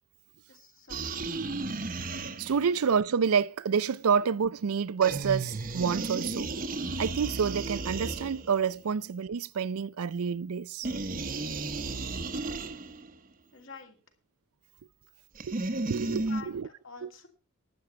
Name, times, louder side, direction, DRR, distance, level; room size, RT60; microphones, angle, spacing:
voice 1, 0.5-1.2 12.6-13.1 13.5-14.0 16.3-17.3, left 5 dB, 65° left, 2.9 m, -48 dB
sound 1, 0.9-2.8 5.0-8.7 10.8-13.1 15.4-16.4, right 3 dB, 40° right, 0.9 m, -34 dB
voice 2, 2.4-6.5 7.0-10.9 15.4-16.7, right 6 dB, 85° right, 0.5 m, -28 dB
12.0 x 8.9 x 5.6 m
head